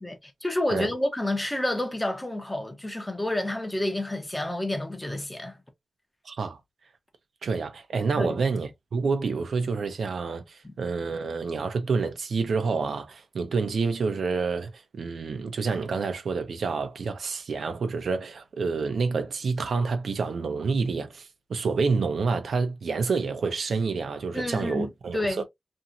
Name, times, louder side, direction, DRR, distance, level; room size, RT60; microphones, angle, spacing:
voice 1, 0.0-5.5 8.2-8.4 10.6-10.7 24.3-25.4, left 1 dB, 10° left, 0.6 m, -29 dB
voice 2, 6.3-6.6 7.4-25.5, right 4 dB, 85° right, 0.6 m, -28 dB
2.9 x 2.7 x 2.4 m
wide cardioid pair, 175°, 0 cm